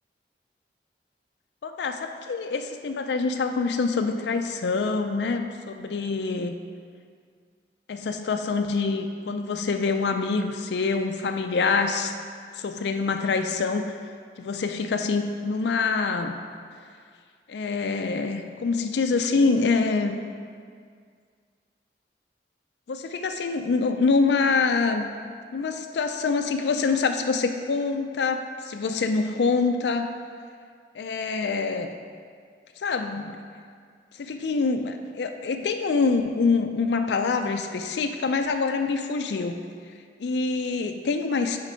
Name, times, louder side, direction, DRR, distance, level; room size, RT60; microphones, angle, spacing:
voice 1, 1.6-6.6 7.9-12.1 12.5-13.9 14.4-16.3 17.5-20.2 22.9-25.1 25.5-30.1 30.9-31.9 32.8-33.4 34.2-39.6 40.2-41.6, left 4 dB, 80° left, 6 dB, 0.4 m, -25 dB
6.6 x 4.6 x 5.1 m, 2.1 s
head